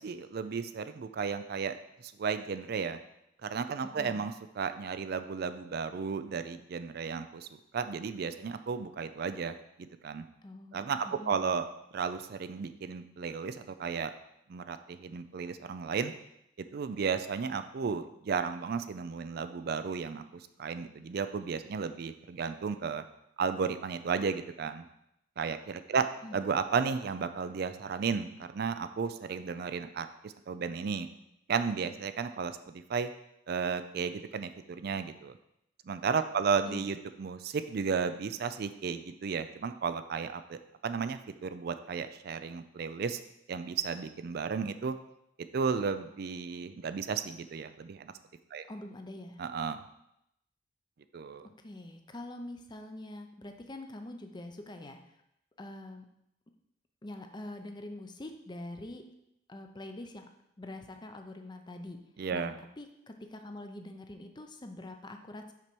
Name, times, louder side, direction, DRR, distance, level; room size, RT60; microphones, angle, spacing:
voice 1, 0.0-1.8 2.0-3.0 3.4-10.2 10.7-11.7 11.9-14.1 14.5-16.1 16.6-23.0 23.4-24.8 25.4-26.1 26.3-31.1 31.5-33.1 33.5-35.3 35.9-43.2 43.5-45.0 45.5-48.1 48.5-48.6 49.4-49.8 51.1-51.5 62.2-62.5, right 5 dB, 55° right, 10 dB, 0.4 m, -34 dB
voice 2, 3.8-4.2 10.4-11.5 26.2-26.4 36.7-36.9 48.7-49.4 51.4-55.0 55.6-56.1 57.0-59.1 59.5-60.3 60.6-62.0 62.3-65.5, left 1 dB, 25° left, 5 dB, 0.6 m, -44 dB
5.9 x 4.4 x 6.1 m, 0.81 s
head